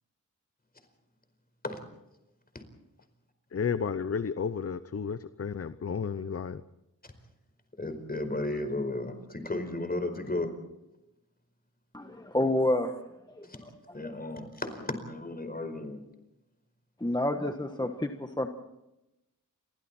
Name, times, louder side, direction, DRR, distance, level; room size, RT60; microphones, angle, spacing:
voice 1, 3.5-6.6, left 6 dB, 45° left, 13 dB, 0.8 m, -32 dB
voice 2, 7.8-10.5 13.5-13.6 13.9-16.0, left 2 dB, 30° left, 8 dB, 4.8 m, -34 dB
voice 3, 11.9-12.9 13.4-14.1 17.0-18.5, left 1 dB, 15° left, 5 dB, 1.5 m, -29 dB
29.5 x 24.0 x 4.4 m, 0.91 s
wide cardioid pair, 100°, 32 cm